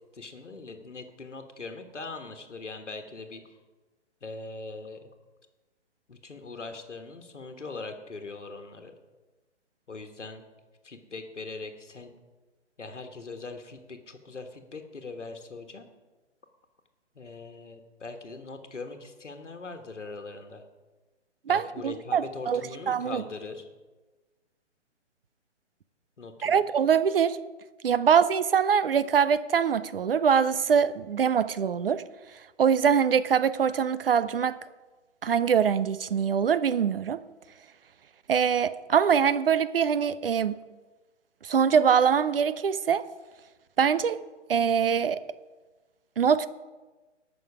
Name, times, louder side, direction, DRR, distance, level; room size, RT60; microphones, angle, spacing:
voice 1, 0.1-3.4 4.2-5.1 6.1-8.9 9.9-10.4 10.8-12.1 12.8-15.9 17.1-20.6 21.5-23.7 26.2-26.6, left 3 dB, 75° left, 1.4 m, -41 dB
voice 2, 21.5-22.6 22.9-23.2 26.4-27.4 27.8-32.0 32.6-34.6 35.2-37.2 38.3-40.6 41.4-43.1 43.8-44.2 44.5-45.2 46.2-46.5, right 7 dB, 50° right, 0.6 m, -23 dB
18.5 x 6.2 x 4.9 m
figure-of-eight pair, 130°, 36 cm